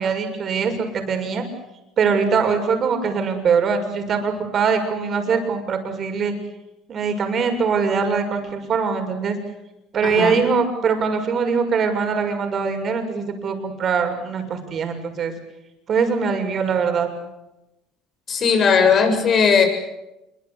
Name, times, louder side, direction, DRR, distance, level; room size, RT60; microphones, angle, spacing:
voice 1, 0.0-1.5 2.0-6.3 6.9-9.4 9.9-15.3 15.9-17.1, right 5 dB, 45° right, 5 dB, 6.4 m, -22 dB
voice 2, 10.0-10.4 18.3-19.7, left 6 dB, 45° left, 6 dB, 7.2 m, -17 dB
26.5 x 24.0 x 8.3 m, 0.95 s
supercardioid pair, 95°, 0 cm